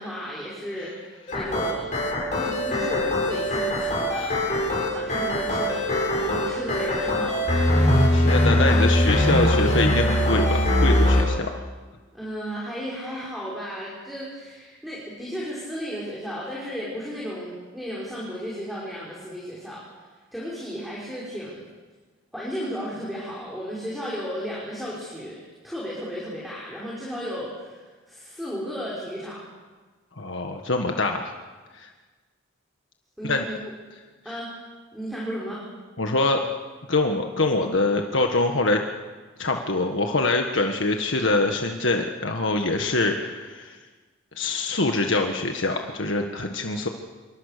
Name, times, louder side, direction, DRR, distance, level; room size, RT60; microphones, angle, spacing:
voice 1, 0.0-2.0 2.3-4.3 4.9-7.5 12.1-19.8 20.3-21.6 22.3-27.8 28.1-29.4 33.2-33.6 34.2-34.5 34.9-35.6, equal, ahead, -6 dB, 5.6 m, -34 dB
sound 1, 1.3-11.2, left 1 dB, 35° left, 7.2 m, -22 dB
voice 2, 8.1-11.6 30.2-31.3 31.7-31.9 33.2-33.5 36.0-36.4 36.9-38.8 39.4-43.8 44.3-46.9, left 2 dB, 70° left, 3 dB, 1.6 m, -24 dB
27.0 x 24.0 x 6.8 m, 1.4 s
head